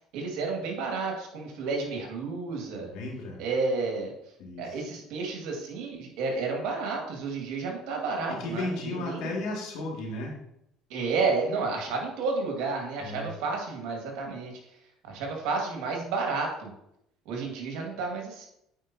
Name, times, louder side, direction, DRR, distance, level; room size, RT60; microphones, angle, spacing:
voice 1, 0.1-2.9 3.4-4.1 4.6-9.2 10.9-14.6 15.1-16.7 17.3-18.5, right 4 dB, 75° right, 1 dB, 1.9 m, -31 dB
voice 2, 2.8-3.4 4.4-4.8 8.3-10.4 13.0-13.3, left 2 dB, 70° left, -2 dB, 2.2 m, -34 dB
8.6 x 4.8 x 2.8 m, 0.79 s
supercardioid pair, 80°, 0 cm